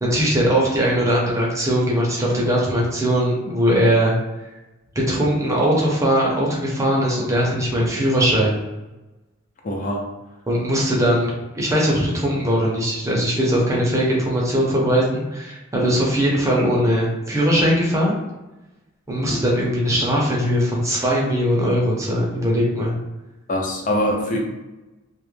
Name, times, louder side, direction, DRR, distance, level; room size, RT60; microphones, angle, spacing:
voice 1, 0.0-4.2 5.1-8.6 10.5-18.1 19.1-23.0, equal, 15° right, -4 dB, 0.6 m, -20 dB
voice 2, 9.6-10.0 15.7-15.9 19.3-19.4 23.5-24.4, left 1 dB, 40° left, 0 dB, 0.5 m, -24 dB
2.3 x 2.0 x 3.1 m, 1.1 s
head